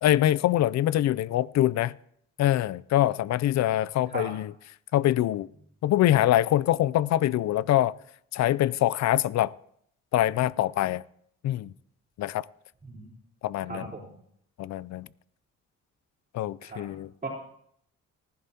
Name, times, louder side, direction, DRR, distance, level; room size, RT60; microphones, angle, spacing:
voice 1, 0.0-2.0 2.4-4.5 4.9-5.5 5.8-7.9 8.3-9.5 10.1-11.0 11.4-11.7 12.2-12.5 13.4-13.9 14.6-15.1 16.3-17.3, left 13 dB, 65° left, 0.5 m, -24 dB
voice 2, 13.7-14.1 16.6-16.8 17.2-17.3, right 4 dB, 25° right, 3.7 m, -36 dB
19.5 x 11.0 x 2.9 m
cardioid pair, 90°, 30 cm